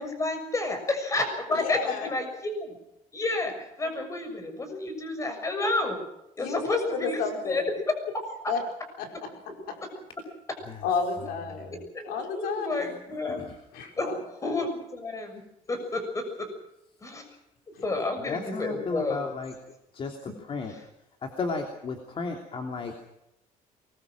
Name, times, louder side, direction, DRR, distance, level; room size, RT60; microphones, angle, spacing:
voice 1, 0.0-2.8 3.1-6.0 6.4-7.9 8.4-8.5 11.9-13.4 14.0-14.1 14.4-15.4 15.7-16.5 17.0-17.3 17.8-19.3 20.3-20.4 20.7-20.8, left 2 dB, 20° left, 6 dB, 6.7 m, -30 dB
voice 2, 1.5-2.1 6.4-7.6 8.5-8.6 9.0-9.1 10.8-11.8 12.1-12.9 13.7-14.6 17.7-18.1, left 5 dB, 85° left, 3 dB, 5.1 m, -32 dB
voice 3, 18.3-19.5 19.9-20.7 21.2-22.9, left 4 dB, 40° left, 4 dB, 2.9 m, -34 dB
23.5 x 21.5 x 6.2 m, 0.85 s
cardioid pair, 140°, 15 cm